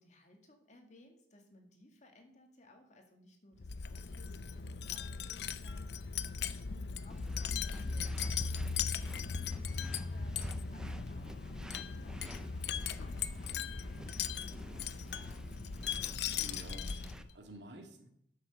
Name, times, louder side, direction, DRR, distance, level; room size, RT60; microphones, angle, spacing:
voice 1, 0.0-13.6 13.9-15.4, left 1 dB, 40° left, 3 dB, 2.1 m, -62 dB
Wind chime, 3.6-17.3, left 6 dB, 65° left, 0.6 m, -38 dB
sound 1, 7.1-17.2, equal, 5° right, 0.5 m, -48 dB
voice 2, 16.3-18.1, right 1 dB, 80° right, 4 dB, 2.0 m, -51 dB
12.0 x 6.5 x 7.0 m, 0.73 s
head